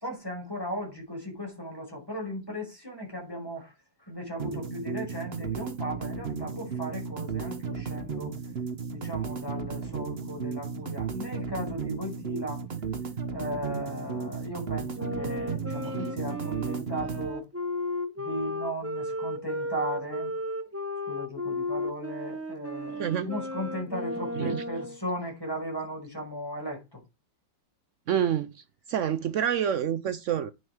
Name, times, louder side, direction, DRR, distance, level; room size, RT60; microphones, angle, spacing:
voice 1, 0.0-3.7 4.0-8.3 8.9-12.6 13.3-17.5 18.2-20.3 21.1-27.0, equal, 10° left, 5.5 m, -36 dB
sound 1, 4.4-17.3, right 5 dB, 40° right, 1.2 m, -34 dB
Wind instrument woodwind instrument, 14.9-25.0, left 1 dB, 20° right, 0.3 m, -34 dB
voice 2, 23.0-23.3 24.3-24.6 28.1-28.5 28.9-30.5, right 9 dB, 80° right, 0.6 m, -27 dB
9.8 x 6.3 x 4.6 m
omnidirectional pair, 2.0 m